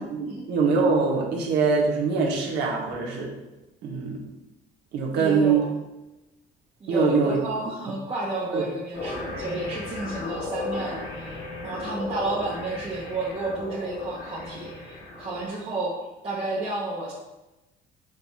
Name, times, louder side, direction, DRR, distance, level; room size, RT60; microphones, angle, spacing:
voice 1, 0.1-3.3 3.8-4.2 4.9-5.6 6.9-7.4 8.5-8.6, right 4 dB, 80° right, -1 dB, 1.4 m, -23 dB
voice 2, 5.1-5.7 6.8-11.4 11.6-15.9 16.2-17.1, right 2 dB, 35° right, -6 dB, 1.2 m, -31 dB
sound 1, 8.9-15.5, left 2 dB, 90° left, 2.1 m, -35 dB
5.1 x 4.2 x 4.7 m, 1.0 s
cardioid pair, 110°, 17 cm